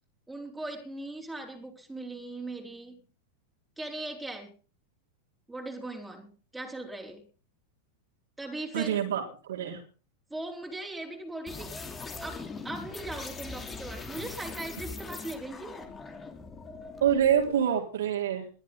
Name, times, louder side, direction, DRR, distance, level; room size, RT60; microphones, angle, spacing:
voice 1, 0.3-3.0 3.8-4.6 5.5-7.3 8.4-9.0 10.3-11.9 12.2-15.9, right 2 dB, 5° right, 1 dB, 4.4 m, -39 dB
voice 2, 8.7-9.8 17.0-18.5, right 9 dB, 60° right, 1 dB, 4.0 m, -26 dB
sound 1, 11.5-17.6, left 4 dB, 15° left, 3.2 m, -41 dB
22.0 x 13.5 x 4.0 m, 0.37 s
figure-of-eight pair, 90°, 0 cm